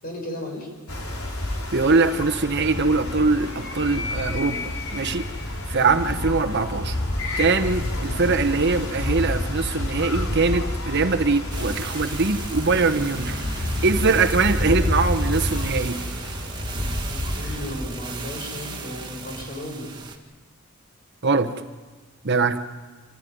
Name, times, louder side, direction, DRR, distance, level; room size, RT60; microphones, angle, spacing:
voice 1, 0.0-0.7 5.8-6.1 8.0-9.1 17.0-19.9, left 1 dB, 45° left, 1 dB, 6.9 m, -36 dB
sound 1, 0.9-17.9, left 1 dB, 85° left, 4.1 m, -29 dB
voice 2, 1.7-5.2 5.7-7.0 7.4-16.0 21.2-21.6 22.2-22.6, right 4 dB, 55° right, 8 dB, 1.1 m, -22 dB
Animal, 2.6-8.5, left 4 dB, 60° left, 1.6 m, -39 dB
sound 2, 11.5-20.2, right 3 dB, 20° right, 2.1 m, -36 dB
26.5 x 15.0 x 9.6 m, 1.3 s
head